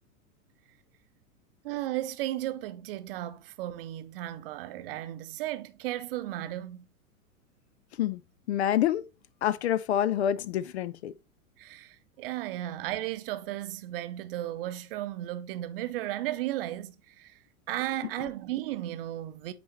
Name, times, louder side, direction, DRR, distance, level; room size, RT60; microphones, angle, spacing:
voice 1, 1.6-6.9 11.6-17.4 17.7-19.5, right 14 dB, 40° right, 0.7 m, -35 dB
voice 2, 8.5-9.0 9.4-11.1, left 11 dB, 50° left, 0.5 m, -27 dB
8.6 x 4.2 x 3.1 m
figure-of-eight pair, 95°, 44 cm